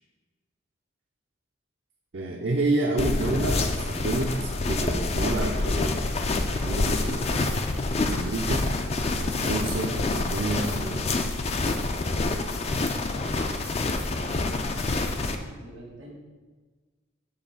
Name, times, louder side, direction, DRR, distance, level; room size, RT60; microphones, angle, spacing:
voice 1, 2.1-6.0 6.6-7.5 8.1-8.7 9.2-11.1, right 2 dB, 65° right, 0 dB, 0.5 m, -29 dB
sound 1, 3.0-15.4, left 2 dB, 35° left, 0.4 m, -27 dB
voice 2, 13.4-16.1, right 1 dB, 90° right, -4 dB, 1.6 m, -46 dB
6.4 x 3.3 x 5.6 m, 1.3 s
head